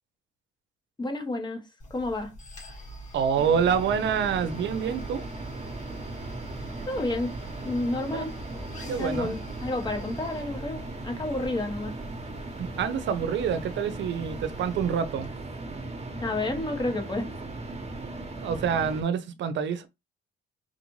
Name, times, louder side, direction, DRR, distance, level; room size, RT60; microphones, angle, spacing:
voice 1, 1.0-1.6 1.9-2.3 6.9-7.3 7.6-8.3 8.8-11.9 16.2-17.3, left 2 dB, 20° left, 1.2 m, -30 dB
sound 1, 1.8-15.3, equal, 40° left, 1.9 m, -45 dB
voice 2, 3.1-5.2 8.1-8.3 8.9-9.3 12.6-15.3 18.4-19.9, right 7 dB, 65° right, 0.7 m, -27 dB
sound 2, 3.4-19.0, right 2 dB, 35° right, 1.1 m, -38 dB
3.9 x 2.5 x 3.1 m
cardioid pair, 90°, 20 cm